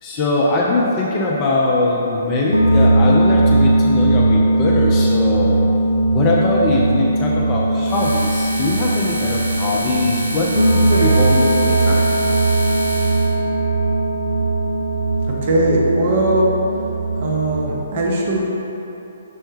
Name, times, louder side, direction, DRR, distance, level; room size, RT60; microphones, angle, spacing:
voice 1, 0.0-5.6 6.1-12.1 17.8-18.0, left 2 dB, 25° left, -3 dB, 0.4 m, -21 dB
sound 1, 2.5-17.7, right 2 dB, 90° right, 0.4 m, -18 dB
sound 2, 7.8-13.4, equal, 90° left, 0.6 m, -28 dB
voice 2, 15.4-16.5 17.1-18.4, right 1 dB, 45° right, -3 dB, 0.7 m, -19 dB
6.0 x 2.1 x 3.1 m, 2.9 s
figure-of-eight pair, 130°, 0 cm